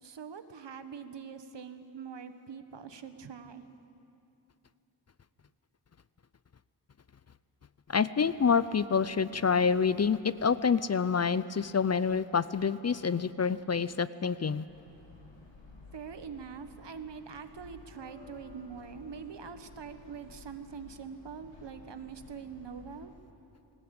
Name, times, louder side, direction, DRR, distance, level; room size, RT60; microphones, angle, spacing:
voice 1, 0.0-3.6 15.9-23.1, right 6 dB, 75° right, 9 dB, 1.3 m, -44 dB
voice 2, 7.9-14.6, left 6 dB, 40° left, 16 dB, 0.5 m, -27 dB
sound 1, 14.7-23.1, left 3 dB, 85° left, 5.8 m, -53 dB
20.5 x 19.0 x 8.8 m, 2.9 s
wide cardioid pair, 100°, 43 cm